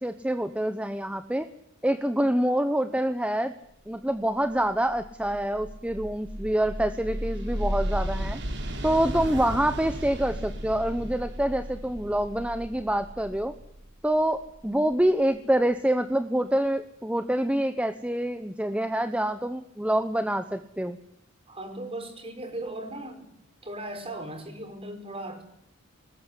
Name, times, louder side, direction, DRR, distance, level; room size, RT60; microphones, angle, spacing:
voice 1, 0.0-1.5 1.8-3.5 3.9-8.4 8.8-13.5 14.0-21.0, right 1 dB, 5° right, 9 dB, 0.9 m, -26 dB
sound 1, 4.4-15.2, equal, 60° right, 3.4 m, -35 dB
voice 2, 21.5-23.3 23.6-25.4, right 1 dB, 30° right, 5 dB, 5.3 m, -37 dB
21.5 x 20.5 x 10.0 m, 0.73 s
head